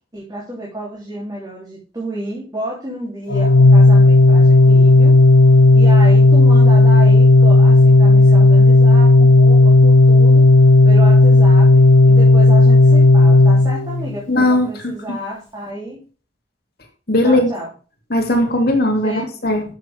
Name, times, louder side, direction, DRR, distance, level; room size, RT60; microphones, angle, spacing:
voice 1, 0.1-5.2 5.7-10.5 10.8-16.0 17.2-17.7 19.0-19.2, right 1 dB, 20° right, -5 dB, 3.4 m, -30 dB
Organ, 3.3-14.2, left 2 dB, 90° left, 0.8 m, -10 dB
voice 2, 14.3-14.9 17.1-17.5 18.1-19.6, left 1 dB, 55° left, 2 dB, 2.7 m, -17 dB
11.5 x 7.5 x 3.6 m, 0.38 s
head